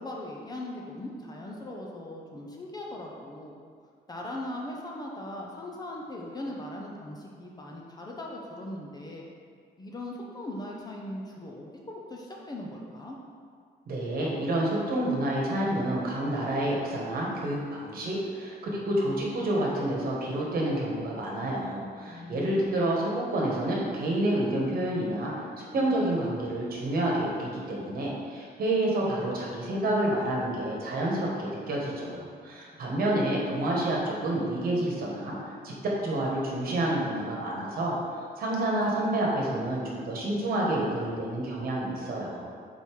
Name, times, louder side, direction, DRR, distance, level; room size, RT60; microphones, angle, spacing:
voice 1, 0.0-3.5 4.1-9.3 9.8-13.2 22.1-22.6 32.1-32.4, left 1 dB, 20° left, -2 dB, 0.6 m, -39 dB
voice 2, 13.9-25.4 25.7-37.9 38.4-42.6, right 1 dB, 55° right, -3 dB, 1.4 m, -29 dB
5.4 x 4.3 x 4.7 m, 2.1 s
cardioid pair, 165°, 18 cm